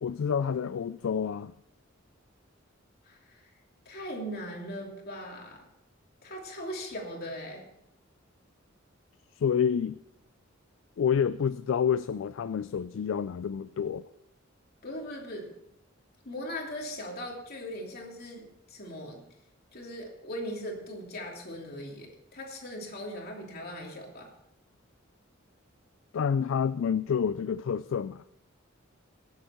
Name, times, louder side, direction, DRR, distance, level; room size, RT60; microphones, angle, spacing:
voice 1, 0.0-1.5 9.4-10.0 11.0-14.1 26.1-28.2, left 7 dB, 65° left, 15 dB, 0.3 m, -28 dB
voice 2, 3.0-3.5 3.8-5.7 6.2-7.6 14.8-15.5 16.2-19.2 19.7-24.3, equal, 50° left, 0 dB, 3.0 m, -39 dB
18.5 x 8.1 x 4.4 m, 0.81 s
head